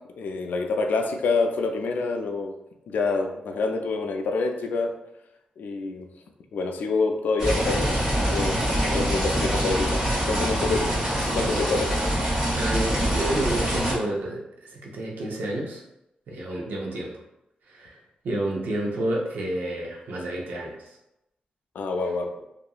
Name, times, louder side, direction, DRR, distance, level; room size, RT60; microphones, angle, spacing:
voice 1, 0.2-2.5 2.9-4.9 5.6-6.1 6.5-7.9 8.3-10.0 10.3-11.9 21.8-22.3, left 3 dB, 90° left, 4 dB, 0.3 m, -27 dB
sound 1, 7.4-13.9, right 1 dB, 20° right, 1.1 m, -25 dB
voice 2, 12.6-14.4 14.8-15.8 16.3-17.1 17.7-18.0 18.2-20.8, right 1 dB, 90° right, -2 dB, 0.6 m, -29 dB
2.8 x 2.5 x 2.3 m, 0.88 s
wide cardioid pair, 100°, 3 cm